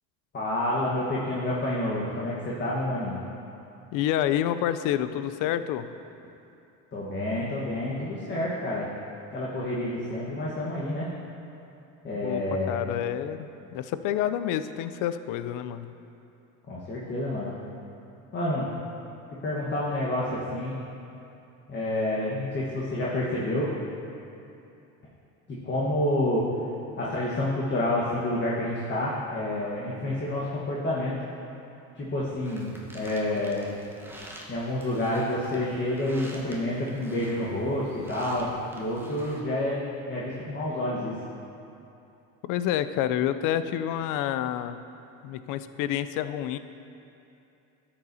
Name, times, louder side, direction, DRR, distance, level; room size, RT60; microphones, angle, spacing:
voice 1, 0.3-3.2 6.9-8.9 9.3-11.1 12.0-12.9 16.7-17.6 18.3-18.7 19.4-20.8 21.7-23.7 25.5-26.4 27.0-31.1 31.9-33.7 34.5-41.1, left 1 dB, 30° left, -6 dB, 1.3 m, -29 dB
voice 2, 3.9-5.9 12.2-12.4 12.7-13.5 13.7-15.9 42.4-44.8 45.2-46.6, left 11 dB, 60° left, 12 dB, 0.5 m, -28 dB
sound 1, 32.4-39.4, right 1 dB, 5° right, 1.1 m, -47 dB
12.5 x 6.8 x 2.7 m, 2.8 s
supercardioid pair, 105°, 36 cm